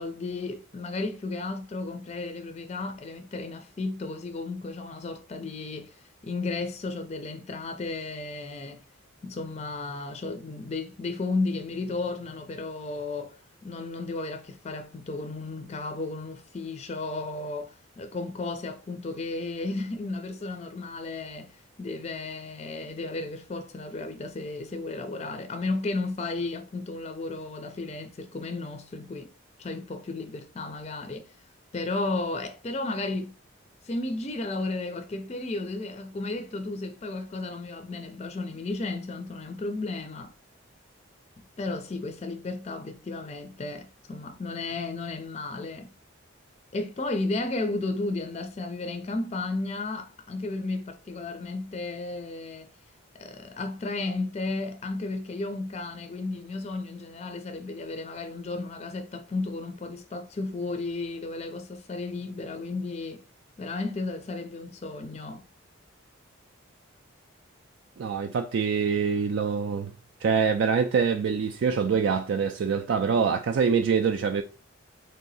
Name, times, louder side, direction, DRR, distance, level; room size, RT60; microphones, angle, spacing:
voice 1, 0.0-5.9 6.2-8.8 9.2-13.4 13.6-29.3 29.6-31.3 31.7-33.3 33.8-40.3 41.6-45.9 46.7-52.7 53.1-63.2 63.6-65.4, left 3 dB, 30° left, 0.4 m, -33 dB
voice 2, 68.0-69.9 70.2-74.4, right 6 dB, 60° right, 0.3 m, -25 dB
3.5 x 2.8 x 4.0 m
head